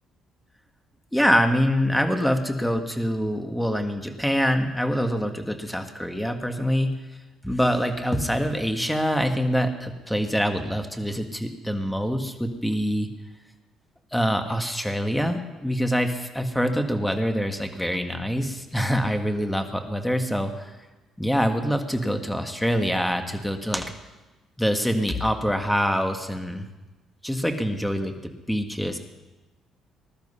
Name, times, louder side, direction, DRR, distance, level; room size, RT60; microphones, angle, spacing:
voice 1, 1.1-6.9 7.4-13.1 14.1-20.7 21.2-23.9 24.6-26.7 27.2-29.0, equal, 5° left, 6 dB, 1.7 m, -25 dB
20.0 x 12.0 x 5.7 m, 1.1 s
cardioid pair, 100°, 0 cm